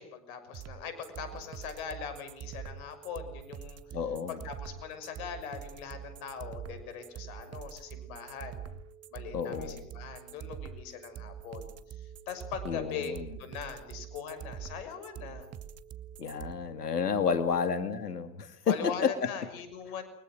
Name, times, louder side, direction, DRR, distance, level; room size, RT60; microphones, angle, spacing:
voice 1, 0.0-4.0 4.3-8.7 9.1-15.5 17.2-17.6 18.6-20.0, left 7 dB, 65° left, 10 dB, 6.4 m, -41 dB
sound 1, 0.5-16.5, right 9 dB, 35° right, 1.8 m, -44 dB
sound 2, 0.7-18.2, right 9 dB, 10° right, 4.1 m, -56 dB
voice 2, 3.9-4.4 9.3-9.8 12.7-13.2 16.2-19.1, left 6 dB, 90° left, 10 dB, 2.3 m, -30 dB
30.0 x 24.0 x 6.4 m, 0.71 s
hypercardioid pair, 85°, 46 cm